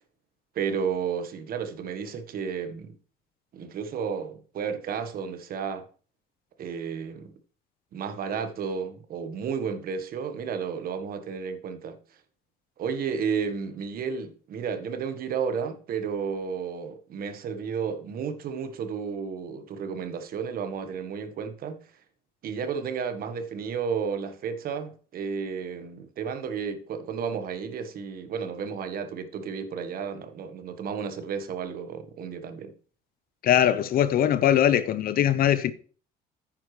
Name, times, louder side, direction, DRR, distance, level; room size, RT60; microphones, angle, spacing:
voice 1, 0.5-3.0 3.5-5.8 6.6-7.3 7.9-12.0 12.8-21.8 22.4-32.7, right 6 dB, 60° right, 1.4 m, -32 dB
voice 2, 33.4-35.7, left 10 dB, 60° left, 0.8 m, -21 dB
9.8 x 9.0 x 3.2 m
cardioid pair, 110°, 17 cm